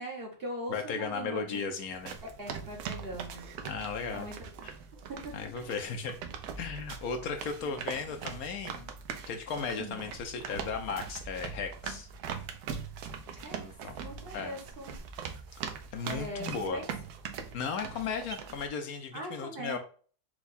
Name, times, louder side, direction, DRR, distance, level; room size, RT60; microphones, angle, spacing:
voice 1, 0.0-1.6 2.4-3.5 4.1-4.3 5.1-5.4 7.6-7.7 9.8-10.1 13.3-13.6 14.0-15.0 16.1-16.8 19.1-19.8, right 1 dB, 45° right, -1 dB, 1.0 m, -41 dB
voice 2, 0.7-2.2 3.6-4.3 4.6-4.7 5.3-6.1 6.6-8.9 9.3-12.1 13.5-13.9 14.3-14.6 15.9-16.8 17.5-19.8, left 5 dB, 70° left, 5 dB, 1.1 m, -36 dB
sound 1, 1.9-18.7, right 6 dB, 75° right, 1.1 m, -41 dB
4.6 x 2.3 x 4.0 m, 0.42 s
omnidirectional pair, 1.7 m